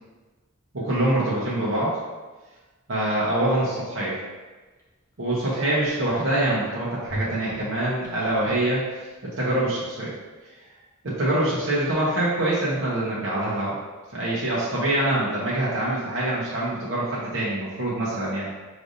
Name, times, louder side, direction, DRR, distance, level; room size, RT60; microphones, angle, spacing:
voice 1, 0.7-1.9 2.9-4.2 5.2-8.8 9.2-10.1 11.0-13.8 14.1-18.5, right 1 dB, 60° right, -7 dB, 0.9 m, -25 dB
sound 1, 4.8-4.9 5.4-5.5 5.8-6.6 7.0-9.3 9.6-9.7, equal, 15° left, 0.6 m, -38 dB
5.1 x 3.3 x 2.6 m, 1.3 s
head